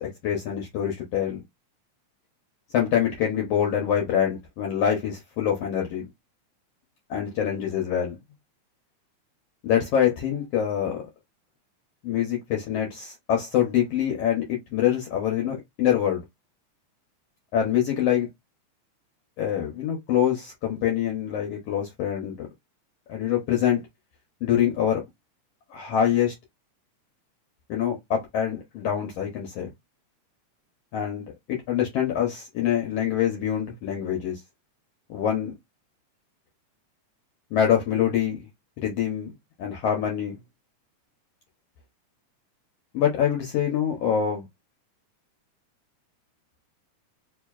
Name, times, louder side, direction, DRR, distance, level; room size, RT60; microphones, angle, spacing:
voice 1, 0.0-1.4 2.7-6.0 7.1-8.1 9.6-11.0 12.0-16.2 17.5-18.3 19.4-22.5 23.1-23.8 24.4-25.0 25.7-26.3 27.7-29.7 30.9-34.4 35.1-35.5 37.5-38.5 38.8-39.3 39.6-40.4 42.9-44.5, left 9 dB, 70° left, 1.6 m, -25 dB
4.7 x 2.7 x 2.3 m
omnidirectional pair, 3.4 m